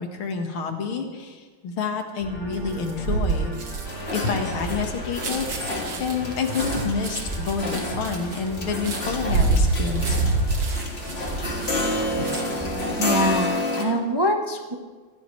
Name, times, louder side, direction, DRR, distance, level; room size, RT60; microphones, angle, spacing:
voice 1, 0.0-3.5 4.1-5.5 6.0-10.2, left 5 dB, 85° left, 4 dB, 2.5 m, -28 dB
sound 1, 2.2-13.5, right 2 dB, 5° right, 6.3 m, -38 dB
sound 2, 2.5-12.7 13.1-13.4, right 3 dB, 70° right, 2.7 m, -27 dB
sound 3, 3.9-13.8, left 2 dB, 30° left, 2.2 m, -30 dB
voice 2, 13.0-14.7, equal, 30° right, 3 dB, 0.4 m, -24 dB
23.5 x 16.0 x 3.3 m, 1.4 s
omnidirectional pair, 2.3 m